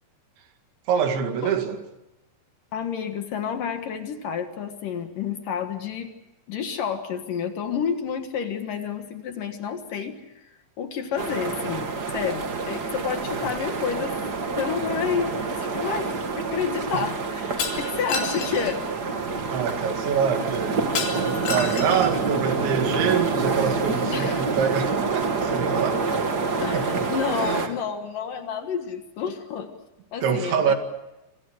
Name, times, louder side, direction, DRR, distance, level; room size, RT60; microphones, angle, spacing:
voice 1, 0.9-1.8 12.8-12.9 13.4-13.5 16.9-17.0 19.5-20.8 21.2-26.0 26.7-27.1 27.4-27.7 30.2-30.8, right 7 dB, 85° right, 6 dB, 4.6 m, -25 dB
voice 2, 2.7-6.1 6.5-10.2 10.8-14.2 14.5-18.8 24.0-24.5 26.6-29.8 30.1-30.7, left 7 dB, 60° left, 6 dB, 2.8 m, -30 dB
sound 1, 11.2-27.7, right 4 dB, 50° right, 1.1 m, -27 dB
Shatter, 17.6-18.7 21.0-22.2, left 5 dB, 85° left, 4.9 m, -30 dB
27.0 x 26.5 x 6.4 m, 0.94 s
omnidirectional pair, 5.1 m